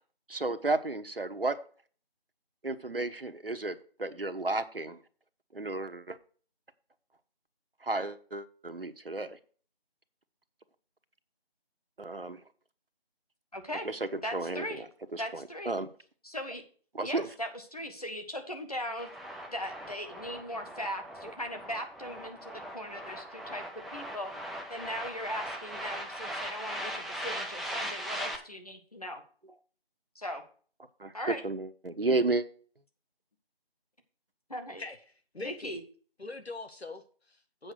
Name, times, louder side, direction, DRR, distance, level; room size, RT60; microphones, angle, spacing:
voice 1, 0.3-1.6 2.6-5.0 5.5-6.2 7.8-9.4 12.0-12.4 13.8-14.8 15.1-15.9 16.9-17.3 31.0-31.1 31.4-32.4, right 2 dB, 65° right, 1.0 m, -32 dB
voice 2, 13.5-13.9 14.2-14.8 15.2-15.7 16.2-16.6 17.0-19.1 19.5-23.6 23.9-24.3 24.7-29.2 30.1-30.4 31.1-31.4 34.5-34.8 35.4-35.8, equal, 40° left, 1.4 m, -39 dB
sound 1, 19.0-28.4, equal, ahead, 0.5 m, -39 dB
voice 3, 35.3-35.8 36.2-37.7, left 2 dB, 85° left, 1.7 m, -42 dB
7.9 x 5.3 x 6.3 m
figure-of-eight pair, 180°, 31 cm